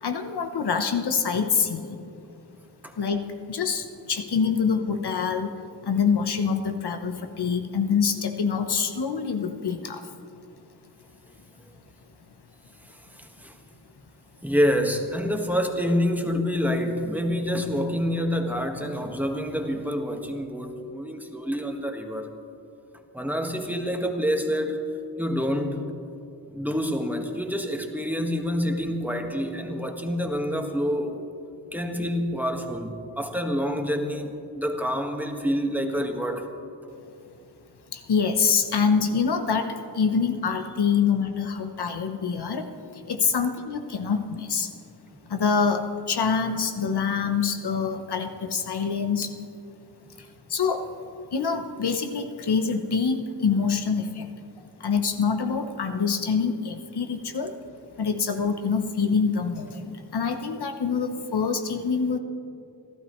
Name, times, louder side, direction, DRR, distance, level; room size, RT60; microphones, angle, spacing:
voice 1, 0.0-2.1 3.0-5.5 5.8-10.1 37.9-44.7 45.3-49.4 50.2-50.9 51.3-54.3 54.8-57.5 58.0-62.2, left 5 dB, 70° left, 6 dB, 1.0 m, -25 dB
voice 2, 12.8-13.6 14.4-22.3 23.1-24.8 25.2-25.8 26.5-31.1 31.7-36.5, equal, 5° right, 3 dB, 1.6 m, -27 dB
30.0 x 12.0 x 3.2 m, 2.6 s
cardioid pair, 55°, 41 cm